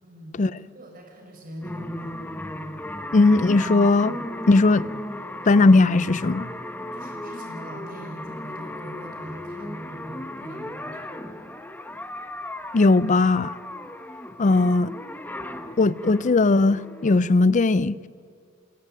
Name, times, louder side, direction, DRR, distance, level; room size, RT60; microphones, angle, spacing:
voice 1, 0.0-2.2 6.9-11.3 14.5-14.7, right 1 dB, 45° right, 5.4 m, -42 dB
sound 1, 1.6-17.2, left 1 dB, 10° left, 1.0 m, -36 dB
voice 2, 3.1-4.1 4.5-4.9 5.5-6.5 12.7-13.6 14.4-14.9 15.8-18.1, left 3 dB, 40° left, 0.5 m, -18 dB
29.0 x 13.0 x 9.1 m
head